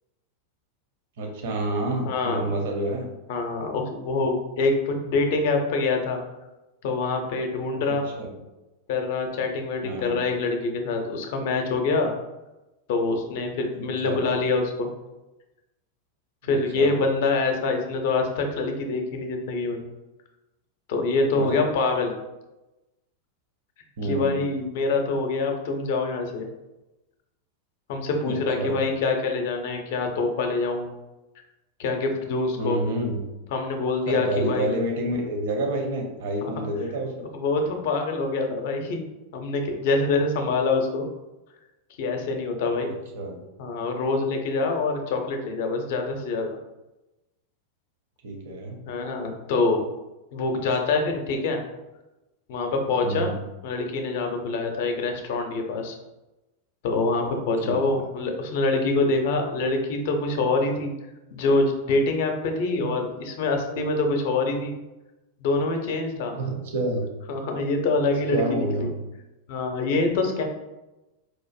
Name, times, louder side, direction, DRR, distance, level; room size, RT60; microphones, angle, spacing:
voice 1, 1.2-3.1 7.9-8.3 9.8-10.2 14.0-14.2 16.5-17.0 21.3-21.6 24.0-24.4 28.2-28.8 32.6-33.2 34.1-37.3 43.1-43.4 48.2-48.8 53.0-53.4 57.6-58.0 62.8-63.0 66.3-67.1 68.3-68.9, right 1 dB, 55° right, 2 dB, 0.7 m, -29 dB
voice 2, 2.0-2.5 3.3-6.2 6.8-8.0 8.9-12.1 12.9-14.9 16.4-19.8 20.9-22.1 24.0-26.5 27.9-30.9 31.8-32.8 33.5-34.7 36.4-36.7 37.3-39.0 39.3-41.1 42.0-42.9 43.6-46.6 48.9-49.8 50.3-51.6 52.5-53.3 53.6-55.9 56.8-60.9 61.3-64.7 65.4-66.3 67.3-68.9 69.5-70.4, left 3 dB, 50° left, 4 dB, 0.5 m, -25 dB
4.3 x 2.5 x 2.4 m, 1.0 s
figure-of-eight pair, 90°, 0 cm